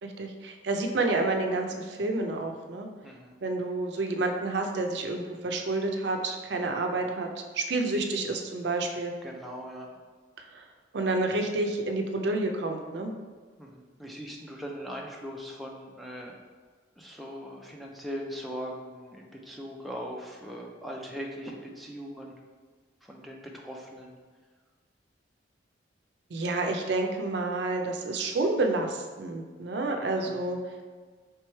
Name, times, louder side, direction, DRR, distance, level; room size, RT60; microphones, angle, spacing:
voice 1, 0.0-2.9 3.4-7.3 7.5-9.1 10.5-10.7 10.9-13.1 26.3-30.6, right 2 dB, 65° right, 3 dB, 0.5 m, -29 dB
voice 2, 3.0-3.4 9.2-9.9 13.6-16.3 17.0-22.3 23.0-24.1 30.1-30.5, equal, ahead, -2 dB, 0.4 m, -40 dB
3.3 x 3.1 x 4.4 m, 1.5 s
head